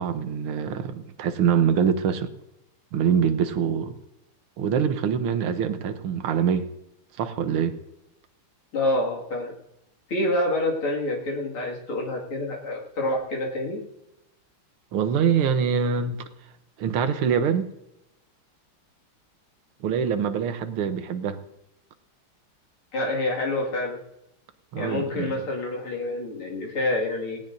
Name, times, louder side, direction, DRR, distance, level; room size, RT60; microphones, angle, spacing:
voice 1, 0.0-2.3 2.9-4.0 4.6-6.7 7.2-7.8 14.9-16.2 16.8-17.7 19.8-21.4 24.7-25.4, right 7 dB, 80° right, 10 dB, 1.8 m, -24 dB
voice 2, 8.7-9.5 10.1-13.8 22.9-24.0 24.8-27.4, left 1 dB, 80° left, -2 dB, 3.1 m, -27 dB
18.0 x 17.5 x 2.6 m, 0.88 s
omnidirectional pair, 2.3 m